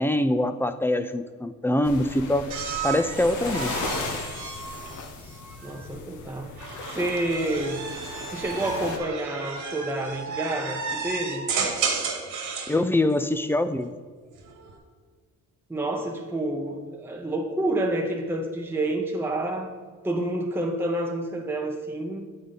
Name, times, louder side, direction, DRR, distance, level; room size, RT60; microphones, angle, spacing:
voice 1, 0.0-2.5 2.8-3.8 12.7-13.9, left 1 dB, 10° left, 11 dB, 0.3 m, -24 dB
sound 1, 1.8-9.0, left 3 dB, 80° left, 0.9 m, -36 dB
sound 2, 2.5-5.8 6.6-12.8 14.2-14.8, right 5 dB, 75° right, 1.4 m, -33 dB
voice 2, 5.6-6.5 6.9-7.9 8.3-11.5 15.7-19.7 20.0-22.3, right 1 dB, 5° right, 1 dB, 0.7 m, -29 dB
8.0 x 5.0 x 4.0 m, 1.5 s
cardioid pair, 90°, 30 cm